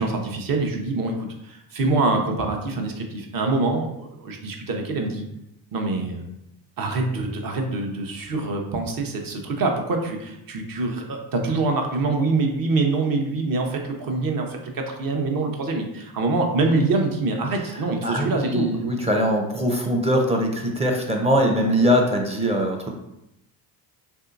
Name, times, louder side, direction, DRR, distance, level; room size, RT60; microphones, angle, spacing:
voice 1, 0.0-5.2 5.7-6.2 6.8-18.7, right 3 dB, 45° right, 3 dB, 0.8 m, -25 dB
voice 2, 17.7-22.9, equal, 15° right, 1 dB, 0.6 m, -22 dB
3.3 x 2.7 x 2.5 m, 0.84 s
hypercardioid pair, 60°, 50 cm